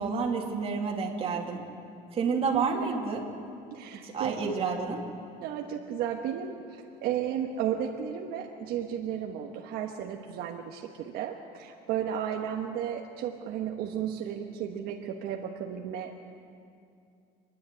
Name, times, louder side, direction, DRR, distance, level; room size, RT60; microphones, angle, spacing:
voice 1, 0.0-1.6 2.2-3.2 4.0-5.0, right 5 dB, 35° right, 0 dB, 2.6 m, -29 dB
voice 2, 2.5-3.0 3.7-4.5 5.4-16.2, right 9 dB, 70° right, 2 dB, 1.3 m, -34 dB
26.5 x 10.5 x 9.8 m, 2.5 s
cardioid pair, 135°, 17 cm